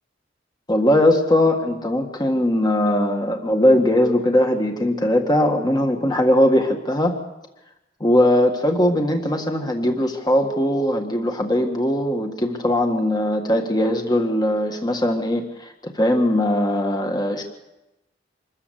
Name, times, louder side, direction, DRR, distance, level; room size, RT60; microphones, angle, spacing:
voice 1, 0.7-7.2 8.0-17.4, left 1 dB, 20° left, 4 dB, 1.7 m, -20 dB
25.5 x 14.0 x 8.2 m, 0.96 s
head